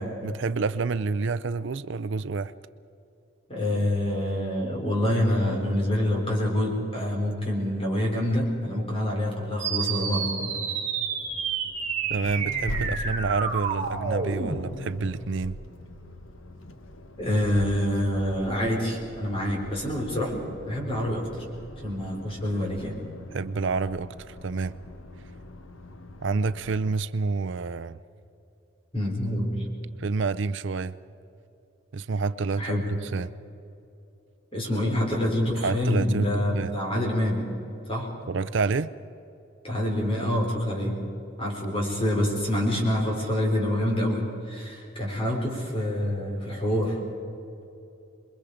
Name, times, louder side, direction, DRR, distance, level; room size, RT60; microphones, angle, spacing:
voice 1, 0.2-2.5 12.1-15.6 23.3-24.7 26.2-28.0 30.0-30.9 31.9-32.8 33.1-33.3 35.6-36.7 38.3-38.9, right 4 dB, 60° right, 0.5 m, -28 dB
voice 2, 3.5-10.6 17.2-20.4 20.7-21.4 21.8-23.0 28.9-29.7 32.6-32.9 34.5-37.5 37.8-38.1 39.6-41.0 41.4-47.0, left 1 dB, 25° left, 4.7 m, -26 dB
sound 1, 9.6-14.6, right 6 dB, 35° right, 3.6 m, -29 dB
Accelerating revving vroom, 11.2-26.9, left 1 dB, 75° left, 1.3 m, -41 dB
27.5 x 22.5 x 5.1 m
head